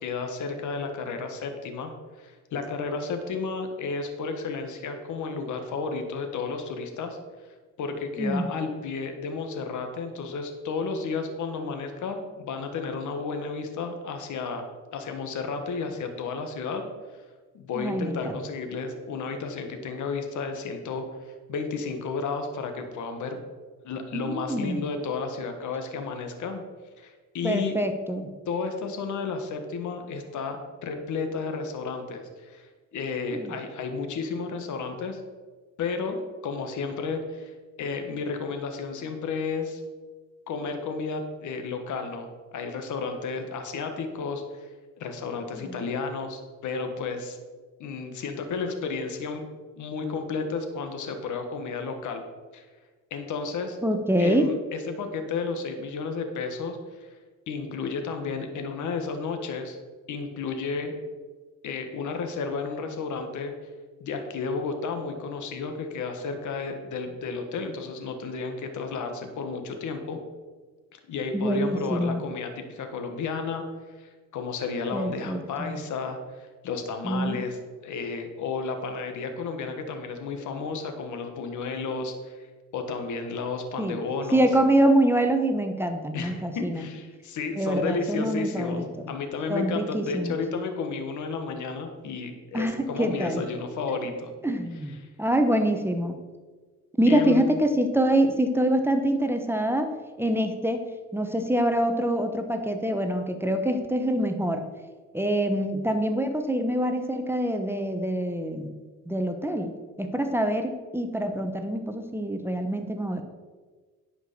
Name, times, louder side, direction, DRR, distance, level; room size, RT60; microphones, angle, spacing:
voice 1, 0.0-7.2 7.8-16.8 17.5-23.4 23.8-26.6 27.0-27.7 28.5-35.2 35.8-39.8 40.5-44.7 45.0-47.4 47.8-49.5 49.8-52.2 52.5-52.6 53.1-53.8 54.2-57.1 57.5-59.8 60.1-61.0 61.6-63.5 64.0-70.2 70.9-73.6 74.0-82.5 82.7-84.5 86.1-88.8 89.1-94.3 97.1-97.4, left 4 dB, 75° left, 6 dB, 1.4 m, -32 dB
voice 2, 8.2-8.5 17.7-18.3 24.1-24.8 27.4-28.3 33.3-33.5 45.5-45.7 53.8-54.5 71.3-72.2 74.9-75.8 77.0-77.4 83.8-84.0 84.3-86.9 87.6-89.1 89.5-90.4 92.5-93.4 94.4-96.2 97.0-99.9 100.2-100.8 101.1-104.6 105.1-108.7 109.1-109.7 110.0-113.2, right 1 dB, 10° right, 6 dB, 1.0 m, -25 dB
10.0 x 5.1 x 6.7 m, 1.4 s
cardioid pair, 90°, 30 cm